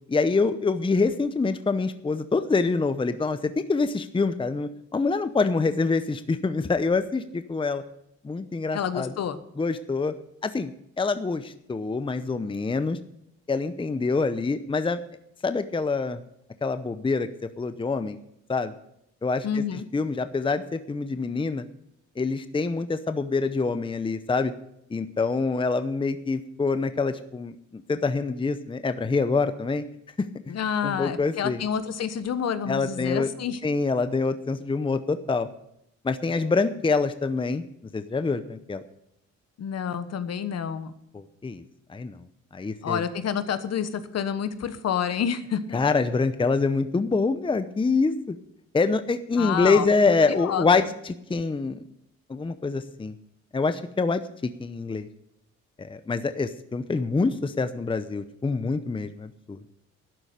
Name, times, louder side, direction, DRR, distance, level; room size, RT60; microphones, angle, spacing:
voice 1, 0.1-7.8 8.2-9.1 9.6-10.1 10.4-10.7 11.0-13.0 13.5-15.0 15.4-16.2 16.6-17.3 17.6-18.2 18.5-18.7 19.2-19.6 19.9-21.6 22.2-24.5 24.9-29.8 30.2-30.5 30.8-31.6 32.7-33.3 33.6-35.5 36.0-37.6 37.9-38.8 41.1-41.6 41.9-42.2 42.5-43.0 45.7-48.4 48.7-51.9 52.3-53.1 53.5-55.1 55.8-59.6, left 4 dB, 15° left, 11 dB, 0.7 m, -25 dB
voice 2, 8.7-9.4 19.4-19.8 30.5-33.6 39.6-40.9 42.8-45.8 49.4-49.9 50.3-50.9, left 8 dB, 55° left, 11 dB, 1.2 m, -29 dB
12.5 x 9.9 x 6.7 m, 0.76 s
cardioid pair, 90°, 30 cm